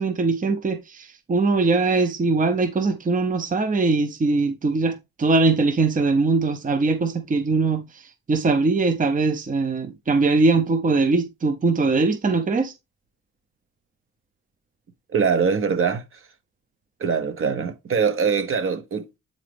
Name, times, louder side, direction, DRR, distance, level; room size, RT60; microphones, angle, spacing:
voice 1, 0.0-12.7, right 3 dB, 25° right, 0.8 m, -21 dB
voice 2, 15.1-16.2 17.0-19.2, right 6 dB, 45° right, 1.1 m, -23 dB
8.8 x 3.9 x 3.4 m
cardioid pair, 90°, 30 cm